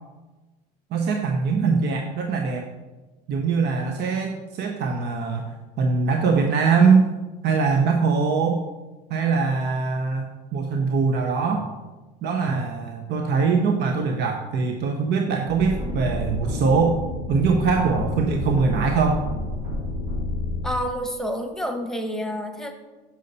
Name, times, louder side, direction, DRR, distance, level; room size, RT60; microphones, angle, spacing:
voice 1, 0.9-2.7 3.3-7.1 7.4-8.6 9.1-11.7 12.2-17.0 17.3-19.2, right 5 dB, 55° right, 4 dB, 0.7 m, -22 dB
sound 1, 15.5-20.7, left 1 dB, 90° right, 1.8 m, -29 dB
voice 2, 20.6-22.7, equal, ahead, 6 dB, 1.0 m, -28 dB
6.3 x 5.6 x 4.1 m, 1.2 s
hypercardioid pair, 75°, 21 cm